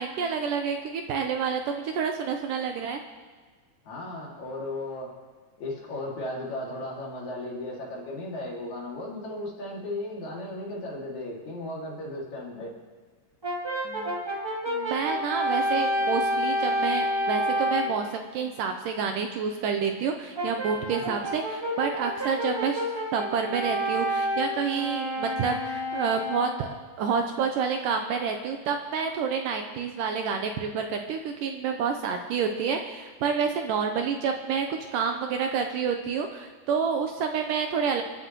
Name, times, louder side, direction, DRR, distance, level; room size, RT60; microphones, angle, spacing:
voice 1, 0.0-3.0 13.9-14.2 14.7-22.8 23.1-26.7 27.0-38.0, right 6 dB, 75° right, 4 dB, 2.1 m, -28 dB
voice 2, 3.9-5.1 5.6-12.8 20.8-21.0, left 1 dB, 50° left, -3 dB, 3.6 m, -35 dB
Brass instrument, 13.4-18.0 20.3-26.7, equal, 15° right, 0.7 m, -29 dB
28.0 x 12.0 x 3.1 m, 1.4 s
omnidirectional pair, 4.3 m